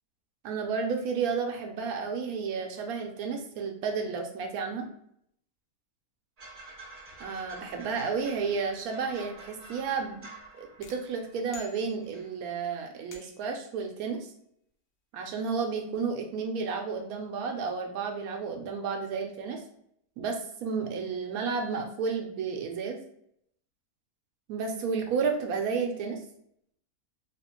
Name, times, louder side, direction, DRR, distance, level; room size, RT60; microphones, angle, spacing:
voice 1, 0.4-4.9 7.2-10.3 10.6-14.2 15.1-19.6 20.2-23.0 24.5-26.2, right 5 dB, 75° right, 4 dB, 1.0 m, -32 dB
sound 1, 6.4-11.7 12.0-12.3, right 3 dB, 40° right, 0.6 m, -49 dB
sound 2, 10.8-12.4 13.1-13.6, left 6 dB, 75° left, 0.5 m, -50 dB
3.3 x 2.4 x 2.9 m, 0.70 s
omnidirectional pair, 1.6 m